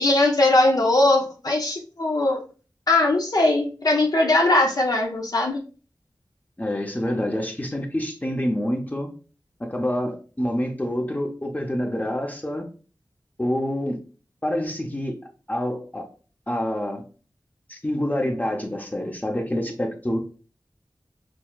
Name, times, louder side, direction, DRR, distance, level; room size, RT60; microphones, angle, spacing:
voice 1, 0.0-2.4 2.9-5.6, left 2 dB, 55° left, 1 dB, 0.6 m, -20 dB
voice 2, 6.6-9.1 9.6-12.7 13.4-14.0 14.4-15.2 15.5-16.1 16.5-17.0 17.7-20.2, left 1 dB, 20° left, 2 dB, 0.7 m, -27 dB
6.1 x 2.3 x 2.3 m, 0.37 s
wide cardioid pair, 60°, 8 cm